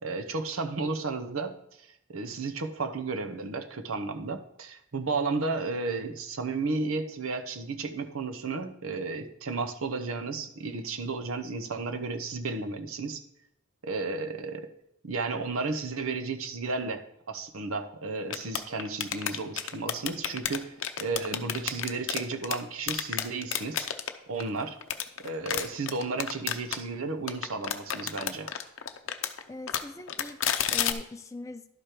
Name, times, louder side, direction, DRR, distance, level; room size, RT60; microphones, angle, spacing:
voice 1, 0.0-13.2 13.8-14.7 15.0-23.9 24.3-24.8 25.2-28.5, right 3 dB, 80° right, 8 dB, 0.8 m, -33 dB
sound 1, 18.3-22.6 22.9-24.1 24.4-26.8 27.3-29.4 29.7-30.9, left 9 dB, 65° left, 0.6 m, -30 dB
voice 2, 29.5-31.7, left 3 dB, 15° left, 8 dB, 0.4 m, -41 dB
11.5 x 5.0 x 4.5 m, 0.77 s
head